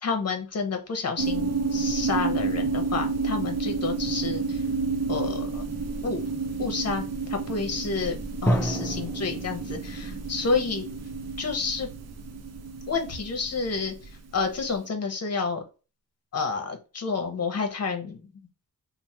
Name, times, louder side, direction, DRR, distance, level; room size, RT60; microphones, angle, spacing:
voice 1, 0.0-4.6 5.1-5.6 6.0-6.2 6.6-7.0 7.3-8.2 8.4-10.9 11.4-11.9 12.9-13.9 14.3-15.6 16.3-18.3, left 4 dB, 45° left, 5 dB, 0.9 m, -29 dB
sound 1, 1.2-14.6, right 4 dB, 45° right, 0.5 m, -30 dB
Drum, 8.5-10.4, equal, 5° left, 0.3 m, -29 dB
3.0 x 2.2 x 4.1 m, 0.32 s
wide cardioid pair, 145°, 36 cm